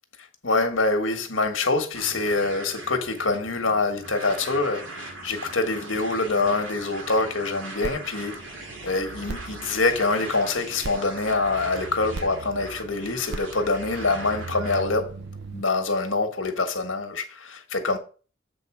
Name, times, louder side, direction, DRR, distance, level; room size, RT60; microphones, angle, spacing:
voice 1, 0.4-8.5 8.8-15.1 15.5-18.0, left 3 dB, 80° left, 1.5 m, -25 dB
sound 1, 1.9-14.8, right 2 dB, 90° right, 2.3 m, -40 dB
sound 2, 7.8-15.6, right 3 dB, 60° right, 0.6 m, -39 dB
7.7 x 4.0 x 6.1 m
head